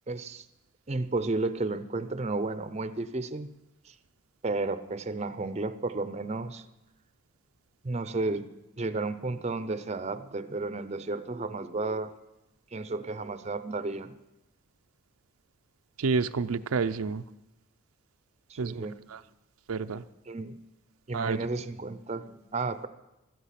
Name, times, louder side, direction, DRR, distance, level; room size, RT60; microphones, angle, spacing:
voice 1, 0.1-0.4 0.9-3.5 3.9-4.0 4.4-6.6 7.8-8.5 8.8-12.1 12.7-14.1 18.5-18.9 20.3-20.5 21.1-22.9, right 3 dB, 30° right, 12 dB, 0.6 m, -32 dB
voice 2, 16.0-17.2 18.6-19.2 19.7-20.0 21.1-21.5, right 4 dB, 90° right, 10 dB, 0.5 m, -29 dB
16.5 x 12.5 x 5.8 m, 0.95 s
head